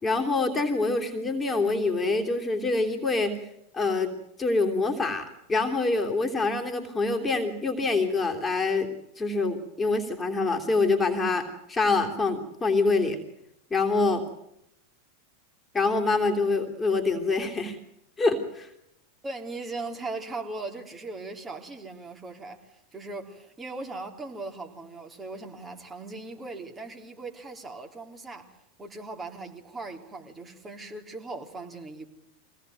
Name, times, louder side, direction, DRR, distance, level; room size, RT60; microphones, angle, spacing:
voice 1, 0.0-3.4 3.7-4.1 4.4-8.9 9.2-13.2 13.7-14.2 15.7-17.8 18.2-18.7, left 3 dB, 15° left, 3 dB, 3.2 m, -25 dB
voice 2, 19.2-28.4 28.8-32.1, right 3 dB, 15° right, 2 dB, 3.5 m, -39 dB
24.0 x 18.0 x 9.3 m, 0.80 s
hypercardioid pair, 90°, 0 cm